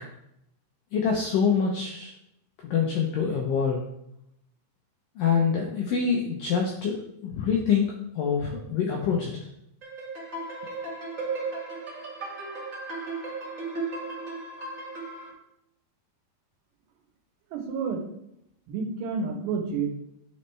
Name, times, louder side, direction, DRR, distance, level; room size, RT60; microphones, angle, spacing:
voice 1, 0.9-2.1 2.6-3.8 5.2-7.0 7.2-9.3, left 6 dB, 85° left, -1 dB, 1.9 m, -25 dB
sound 1, 9.8-15.3, right 3 dB, 35° right, 1.2 m, -35 dB
voice 2, 17.5-18.0 18.7-19.9, right 5 dB, 85° right, 2 dB, 3.3 m, -29 dB
10.5 x 4.2 x 3.3 m, 0.78 s
omnidirectional pair, 5.0 m